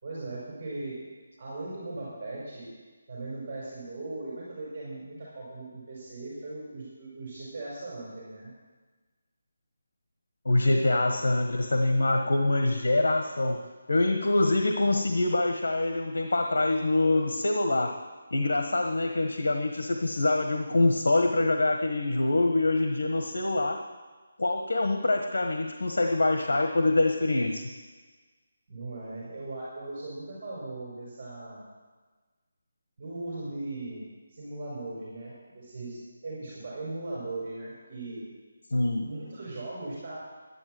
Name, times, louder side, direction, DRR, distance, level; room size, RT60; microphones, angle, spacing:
voice 1, 0.0-1.0 1.4-2.7 3.1-8.5 28.7-31.6 33.0-38.2 39.0-40.2, right 2 dB, 40° right, -6 dB, 5.0 m, -38 dB
voice 2, 10.4-13.6 13.9-17.9 18.3-23.8 24.4-27.6 38.7-39.0, left 2 dB, 85° left, 4 dB, 1.4 m, -25 dB
11.5 x 11.0 x 7.8 m, 1.3 s
figure-of-eight pair, 170°, 0 cm